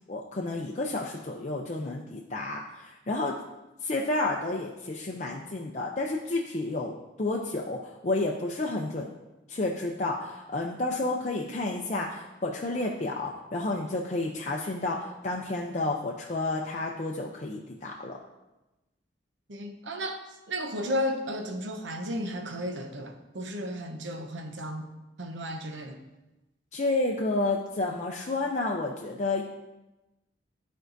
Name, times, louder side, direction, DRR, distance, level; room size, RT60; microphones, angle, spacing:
voice 1, 0.1-3.3 3.8-9.1 9.5-18.2 26.7-29.4, left 2 dB, 40° left, -1 dB, 0.5 m, -31 dB
voice 2, 19.5-20.2 20.5-24.9 25.2-26.0, equal, 80° right, 5 dB, 0.8 m, -33 dB
11.5 x 4.6 x 2.6 m, 1.0 s
head